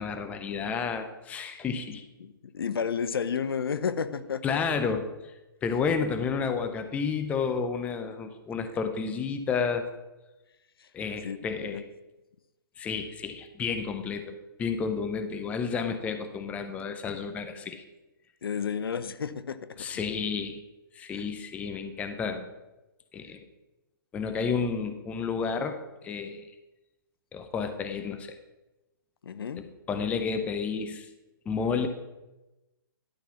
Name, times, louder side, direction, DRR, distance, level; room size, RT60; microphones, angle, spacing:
voice 1, 0.0-2.0 4.4-5.1 5.6-9.9 10.9-11.9 12.8-17.8 19.8-20.6 20.9-22.5 23.1-23.4 24.1-25.8 26.0-26.5 27.3-28.3 29.9-31.1 31.5-31.9, left 5 dB, 10° left, 7 dB, 0.6 m, -31 dB
voice 2, 2.2-4.6 10.8-10.9 11.2-11.8 18.4-20.0 21.1-21.3 29.2-29.6, left 6 dB, 80° left, 13 dB, 0.7 m, -32 dB
11.5 x 4.0 x 6.9 m, 1.0 s
hypercardioid pair, 150°, 12 cm